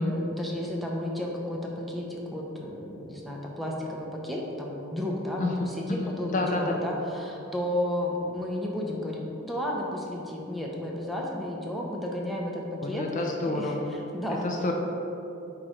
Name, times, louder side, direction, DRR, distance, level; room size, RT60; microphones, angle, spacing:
voice 1, 0.0-14.4, left 1 dB, ahead, -3 dB, 0.7 m, -33 dB
voice 2, 6.3-6.8 12.8-14.0 14.4-14.7, left 2 dB, 40° left, 1 dB, 0.5 m, -29 dB
8.4 x 3.1 x 4.9 m, 3.0 s
head